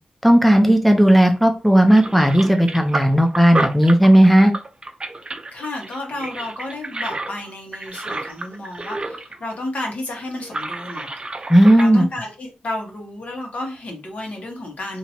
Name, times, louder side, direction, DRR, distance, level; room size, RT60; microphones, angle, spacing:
voice 1, 0.2-4.5 11.5-12.1, right 1 dB, ahead, 5 dB, 0.6 m, -14 dB
sound 1, 1.2-1.5 1.8-9.4 9.7-9.8 10.4-11.9, right 2 dB, 35° right, 0.5 m, -30 dB
voice 2, 5.5-11.5 11.7-15.0, left 2 dB, 65° left, 1 dB, 1.4 m, -32 dB
2.9 x 2.8 x 4.3 m, 0.32 s
cardioid pair, 60°, 3 cm